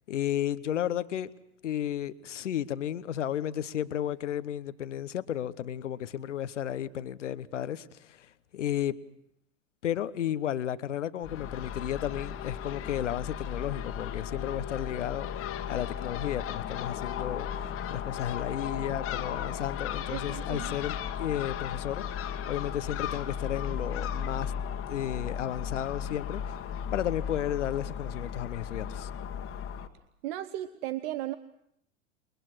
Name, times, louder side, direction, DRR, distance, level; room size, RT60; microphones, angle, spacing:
voice 1, 0.1-1.3 1.6-9.0 9.8-15.4 15.7-22.1 22.5-24.5 24.9-26.6 26.9-29.1, left 10 dB, 70° left, 1.1 m, -33 dB
Crow / Gull seagull, 11.2-29.9, left 8 dB, 35° left, 1.9 m, -35 dB
voice 2, 20.1-20.7 30.2-31.4, right 14 dB, 50° right, 1.0 m, -35 dB
29.0 x 22.5 x 6.2 m
figure-of-eight pair, 80°, 37 cm